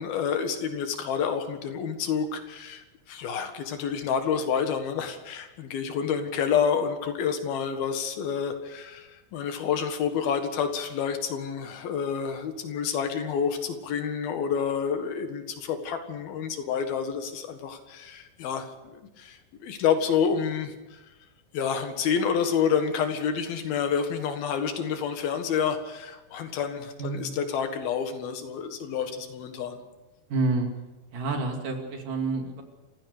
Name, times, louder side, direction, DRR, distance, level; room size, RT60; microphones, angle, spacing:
voice 1, 0.0-21.0 21.5-29.8, left 7 dB, 75° left, 7 dB, 3.6 m, -29 dB
voice 2, 27.0-27.4 30.3-30.7 31.1-32.6, right 3 dB, 60° right, 3 dB, 4.1 m, -28 dB
28.0 x 16.0 x 6.7 m, 1.1 s
omnidirectional pair, 4.3 m